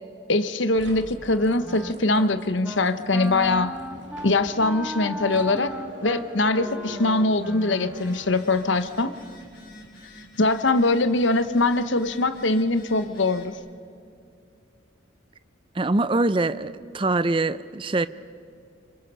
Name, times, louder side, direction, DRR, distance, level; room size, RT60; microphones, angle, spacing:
voice 1, 0.3-3.7 4.2-5.7 6.0-9.1 10.4-13.5, left 2 dB, 70° left, 11 dB, 1.0 m, -22 dB
sound 1, 0.7-9.5, right 1 dB, 70° right, 2.4 m, -45 dB
Wind instrument woodwind instrument, 1.2-2.3 2.6-2.9 3.1-8.4, equal, 5° right, 1.4 m, -35 dB
Telephone, 7.8-13.5, left 2 dB, 50° left, 5.1 m, -47 dB
voice 2, 15.8-18.1, right 2 dB, 25° right, 14 dB, 0.5 m, -23 dB
27.0 x 24.5 x 5.6 m, 2.4 s
head